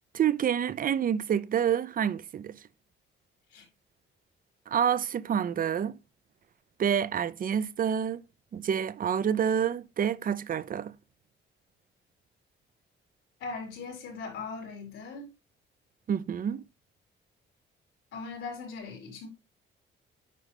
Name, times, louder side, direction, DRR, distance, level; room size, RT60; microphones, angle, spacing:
voice 1, 0.1-2.5 4.7-6.0 6.8-8.2 8.5-10.9 16.1-16.6, right 8 dB, 45° right, 0.6 m, -28 dB
voice 2, 13.4-15.3 18.1-19.3, left 4 dB, 90° left, 4.2 m, -39 dB
9.3 x 5.3 x 3.4 m
cardioid pair, 90°, 20 cm